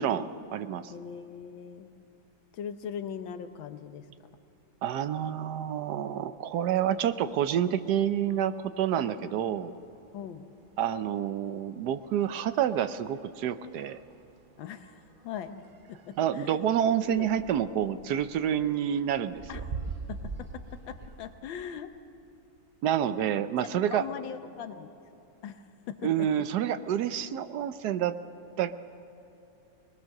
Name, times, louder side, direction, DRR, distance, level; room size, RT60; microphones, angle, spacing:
voice 1, 0.0-0.9 4.8-9.7 10.8-14.0 16.2-19.4 22.8-24.1 26.0-28.2 28.6-28.8, right 9 dB, 65° right, 12 dB, 1.1 m, -28 dB
voice 2, 0.9-1.9 2.5-4.1 10.1-10.5 14.6-15.6 15.9-16.6 17.0-17.3 19.5-19.6 20.1-21.9 23.6-24.9 25.4-26.3, left 8 dB, 75° left, 10 dB, 1.6 m, -40 dB
sound 1, 6.8-21.4, right 4 dB, 90° right, 0.4 m, -46 dB
21.5 x 20.0 x 6.6 m, 2.9 s
omnidirectional pair, 2.2 m